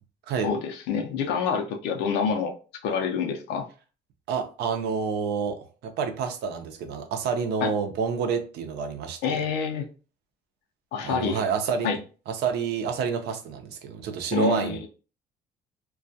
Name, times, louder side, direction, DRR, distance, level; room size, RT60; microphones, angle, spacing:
voice 1, 0.4-2.6 2.8-3.7 7.6-7.7 9.2-9.9 10.9-11.4 11.8-12.0 14.3-14.9, left 6 dB, 90° left, 0.6 m, -27 dB
voice 2, 4.3-5.6 5.8-9.4 11.0-11.9 12.3-14.9, right 6 dB, 75° right, 0.6 m, -28 dB
2.3 x 2.2 x 2.6 m
cardioid pair, 110°, 17 cm